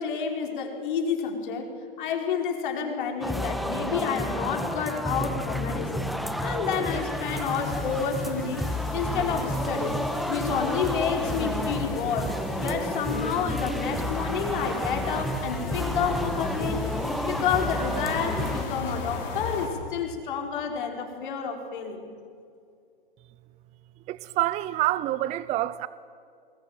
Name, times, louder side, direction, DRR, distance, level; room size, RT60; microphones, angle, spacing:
voice 1, 0.0-1.7 2.0-6.1 6.4-8.6 8.9-10.0 10.3-16.8 17.2-22.1, left 7 dB, 60° left, 4.8 m, -29 dB
sound 1, 3.2-18.7, equal, ahead, 1.3 m, -31 dB
sound 2, 7.2-19.7, left 3 dB, 40° left, 6.5 m, -37 dB
voice 2, 24.1-25.9, right 15 dB, 25° right, 0.6 m, -27 dB
28.0 x 21.0 x 9.1 m
hypercardioid pair, 120°, 29 cm